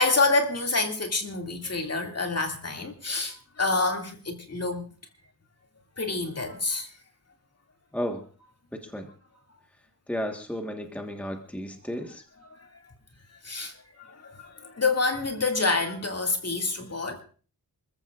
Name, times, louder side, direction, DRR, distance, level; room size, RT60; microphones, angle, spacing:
voice 1, 0.0-4.9 6.0-6.9 13.4-13.7 14.1-14.2 14.4-17.2, left 3 dB, 40° left, 2.5 m, -27 dB
voice 2, 8.7-9.1 10.1-12.2, equal, 5° left, 1.4 m, -33 dB
27.0 x 14.5 x 2.5 m
wide cardioid pair, 120°, 38 cm